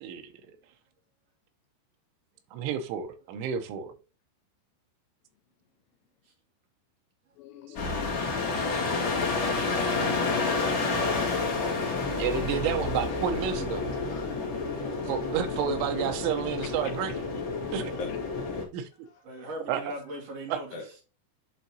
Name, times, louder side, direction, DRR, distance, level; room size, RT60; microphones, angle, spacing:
voice 1, 0.0-0.6 2.5-3.9 7.7-7.8 12.2-13.8 15.1-17.2 17.7-17.9 18.7-18.9 19.7-19.8 20.5-20.6, right 8 dB, 85° right, 3.3 m, -30 dB
voice 2, 7.4-8.5 8.9-9.7, left 10 dB, 85° left, 2.5 m, -45 dB
sound 1, 7.7-18.6, left 3 dB, 45° left, 1.6 m, -29 dB
voice 3, 10.1-12.7 15.3-15.8 19.2-20.9, equal, 45° right, 2.2 m, -41 dB
voice 4, 14.0-15.1 17.1-17.4 18.0-18.5 19.1-19.2 20.7-20.9, left 3 dB, 65° left, 2.5 m, -45 dB
11.0 x 3.9 x 2.8 m
omnidirectional pair, 5.4 m